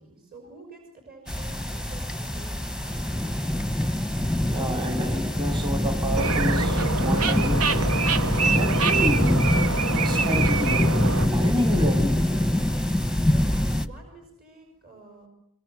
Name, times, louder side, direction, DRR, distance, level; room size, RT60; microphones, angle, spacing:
voice 1, 0.0-3.6 13.3-15.3, right 3 dB, 45° right, 5.6 m, -48 dB
sound 1, 1.3-13.9, left 1 dB, 5° right, 1.1 m, -24 dB
voice 2, 4.5-7.8 8.5-9.4 9.9-10.9 11.3-12.4, equal, 20° right, 2.2 m, -29 dB
sound 2, 6.2-11.3, right 4 dB, 70° right, 1.2 m, -26 dB
23.5 x 23.0 x 7.9 m
head